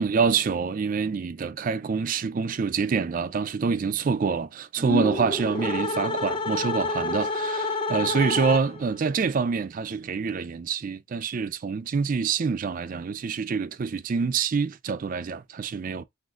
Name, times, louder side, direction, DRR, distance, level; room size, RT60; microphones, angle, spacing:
voice 1, 0.0-16.0, right 5 dB, 40° right, 0.3 m, -26 dB
sound 1, 4.8-9.0, left 3 dB, 25° left, 0.5 m, -29 dB
6.1 x 2.5 x 2.4 m
head